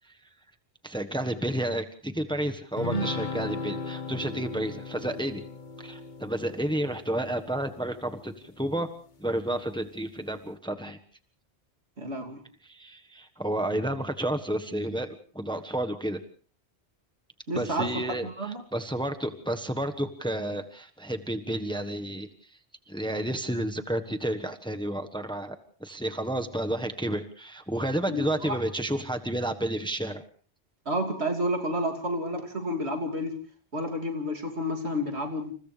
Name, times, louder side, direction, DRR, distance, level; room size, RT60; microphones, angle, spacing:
voice 1, 0.8-5.4 5.8-8.9 9.2-11.0 12.6-16.2 17.5-22.3 22.9-30.2, right 1 dB, 5° left, 7 dB, 1.3 m, -31 dB
sound 1, 2.8-8.4, left 2 dB, 45° left, 1.4 m, -36 dB
voice 2, 12.0-12.4 17.5-18.6 28.1-28.6 30.8-33.4 33.7-35.5, equal, 75° right, 3 dB, 3.2 m, -30 dB
30.0 x 28.0 x 3.4 m, 0.43 s
omnidirectional pair, 1.1 m